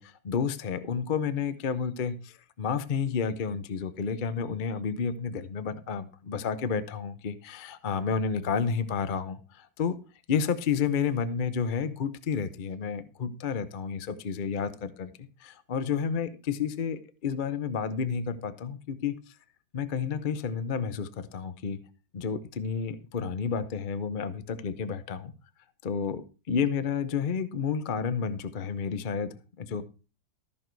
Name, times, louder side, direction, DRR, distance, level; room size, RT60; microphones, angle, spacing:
voice 1, 0.0-10.0 10.3-19.1 19.7-21.8 22.1-25.3 25.8-29.8, left 6 dB, 55° left, 0.5 m, -31 dB
14.0 x 6.5 x 4.6 m
omnidirectional pair, 2.1 m